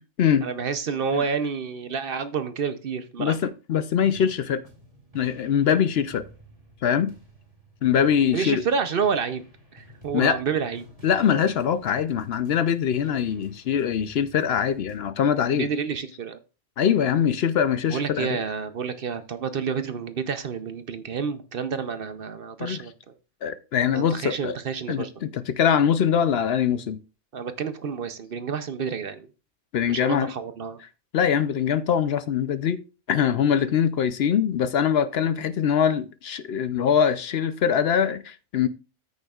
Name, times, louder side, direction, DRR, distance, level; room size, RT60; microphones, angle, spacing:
voice 1, 0.4-3.5 8.3-9.4 9.7-10.8 15.5-16.4 17.9-23.1 23.9-25.1 27.3-29.3 29.9-30.8, right 6 dB, 55° right, 0.8 m, -29 dB
voice 2, 3.2-4.6 5.1-6.2 6.8-7.1 7.8-8.6 10.1-10.4 11.0-15.7 16.8-18.4 22.6-22.8 23.4-24.6 24.9-27.0 29.7-30.3 31.1-32.8 33.1-38.7, left 8 dB, 65° left, 0.8 m, -23 dB
sound 1, 4.0-15.0, right 1 dB, 30° right, 2.7 m, -51 dB
14.0 x 6.3 x 2.4 m
omnidirectional pair, 1.2 m